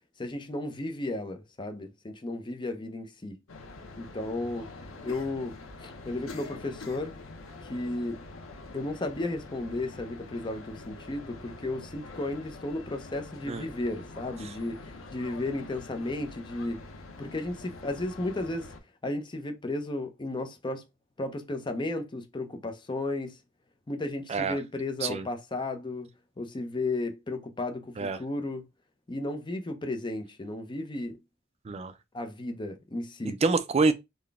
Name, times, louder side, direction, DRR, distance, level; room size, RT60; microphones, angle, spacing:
voice 1, 0.2-3.4 4.0-4.7 5.0-7.1 7.7-8.2 8.7-16.8 17.2-18.7 19.0-20.8 21.2-23.4 23.9-26.1 26.4-28.6 29.1-31.2 32.1-33.4, left 2 dB, 25° left, 0.6 m, -34 dB
sound 1, 3.5-18.8, left 3 dB, 80° left, 0.7 m, -45 dB
voice 2, 33.2-33.9, right 4 dB, 30° right, 0.4 m, -26 dB
3.9 x 2.2 x 3.4 m
head